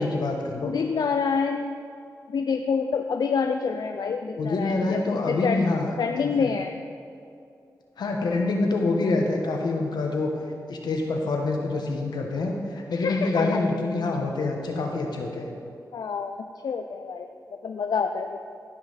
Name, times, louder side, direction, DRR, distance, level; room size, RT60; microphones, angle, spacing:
voice 1, 0.0-0.7 4.3-6.5 8.0-10.3 10.7-15.5, left 3 dB, 90° left, 1 dB, 1.2 m, -26 dB
voice 2, 0.6-1.7 2.3-5.7 6.0-6.7 12.9-13.6 15.9-18.4, left 5 dB, 75° left, 6 dB, 0.4 m, -27 dB
15.5 x 5.6 x 4.1 m, 2.4 s
cardioid pair, 60°, 7 cm